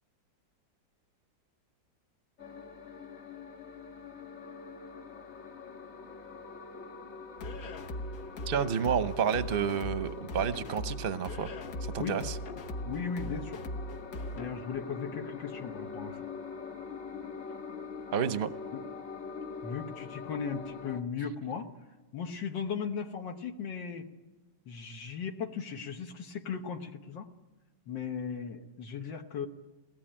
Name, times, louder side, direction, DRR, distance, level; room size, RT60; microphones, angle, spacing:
sound 1, 2.4-21.0, left 5 dB, 40° left, 1.5 m, -44 dB
sound 2, 7.4-14.5, equal, 55° left, 1.5 m, -40 dB
voice 1, 8.5-11.5 11.8-12.4 18.1-18.5, right 7 dB, 45° right, 11 dB, 0.8 m, -30 dB
voice 2, 12.9-13.6 14.4-16.3 19.6-21.7 22.1-24.1 24.7-27.3 27.9-29.5, left 6 dB, 85° left, 2 dB, 2.0 m, -37 dB
22.0 x 18.5 x 8.9 m, 1.1 s
omnidirectional pair, 1.9 m